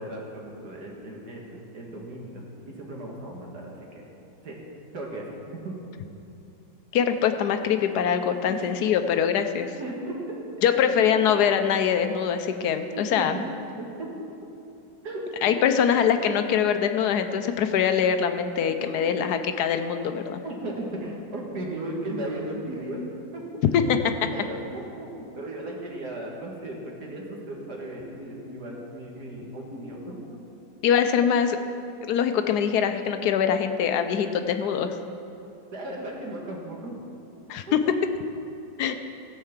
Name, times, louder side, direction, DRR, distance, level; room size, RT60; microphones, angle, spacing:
voice 1, 0.0-2.4 2.7-4.0 4.4-4.5 4.9-5.7 8.5-8.9 9.8-10.2 10.6-11.0 12.9-13.3 13.8-14.1 15.0-15.7 18.7-19.1 20.4-23.0 23.3-23.9 24.3-30.2 34.2-34.3 35.7-36.9, right 1 dB, 60° right, -1 dB, 2.1 m, -36 dB
voice 2, 6.9-9.7 10.6-13.3 15.4-20.4 23.7-23.8 30.8-31.6 32.0-34.9 37.5-37.8 38.8-38.9, left 8 dB, 70° left, 8 dB, 1.1 m, -23 dB
16.0 x 5.7 x 7.3 m, 2.8 s
omnidirectional pair, 2.0 m